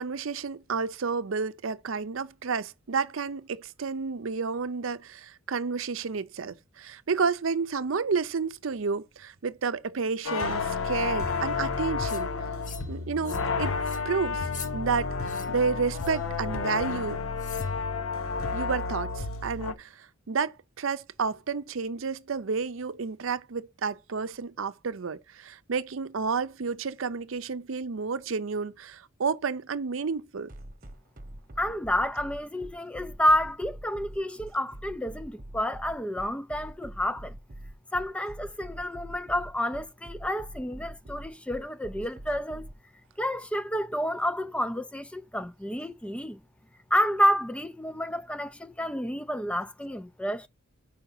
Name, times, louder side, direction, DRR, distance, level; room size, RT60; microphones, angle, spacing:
voice 1, 0.0-12.3 12.9-13.8 14.0-17.2 18.5-30.5, right 5 dB, 70° right, 0.6 m, -31 dB
sound 1, 10.2-19.7, left 4 dB, 85° left, 0.9 m, -31 dB
sound 2, 12.0-12.2 12.6-12.9 13.2-13.5 13.8-14.0 14.4-14.7 15.2-15.5 15.9-16.2 17.4-17.7, left 7 dB, 40° left, 0.9 m, -43 dB
sound 3, 30.5-42.7, right 1 dB, 40° right, 1.0 m, -43 dB
voice 2, 31.6-37.4 37.9-42.7 43.2-46.4 46.9-50.5, equal, 5° left, 0.3 m, -29 dB
5.8 x 5.0 x 5.5 m
head